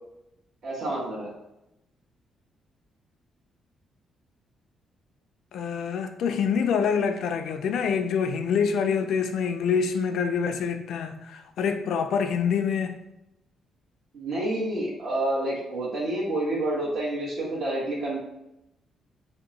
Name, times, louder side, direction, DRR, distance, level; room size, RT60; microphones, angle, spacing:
voice 1, 0.6-1.3 14.1-18.2, right 1 dB, 60° right, -6 dB, 1.2 m, -28 dB
voice 2, 5.5-13.0, left 6 dB, 75° left, 7 dB, 0.3 m, -26 dB
2.8 x 2.2 x 3.7 m, 0.88 s
cardioid pair, 110°, 0 cm